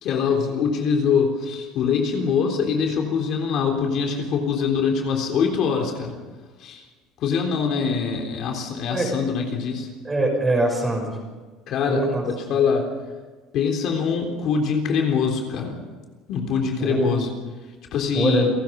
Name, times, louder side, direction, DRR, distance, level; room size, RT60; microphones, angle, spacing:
voice 1, 0.0-6.2 6.6-6.9 7.2-9.9 11.7-12.9 13.5-15.8 16.3-17.3 17.9-18.5, left 6 dB, 45° left, 2 dB, 3.7 m, -23 dB
voice 2, 10.0-11.2 11.9-12.2 16.8-17.1 18.1-18.5, right 2 dB, 10° right, 2 dB, 6.2 m, -22 dB
30.0 x 18.5 x 5.4 m, 1.3 s
cardioid pair, 170°, 0 cm